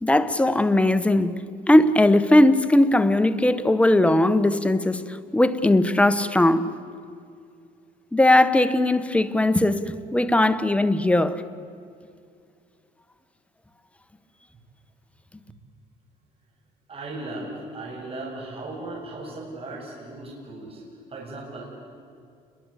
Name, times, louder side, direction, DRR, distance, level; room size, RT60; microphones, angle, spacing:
voice 1, 0.0-1.3 1.7-5.0 5.3-6.7 8.1-11.4, left 1 dB, 5° left, 1.4 m, -19 dB
voice 2, 16.9-20.8 21.1-21.9, right 2 dB, 35° right, 7.2 m, -37 dB
29.5 x 22.5 x 8.4 m
cardioid pair, 110°, 17 cm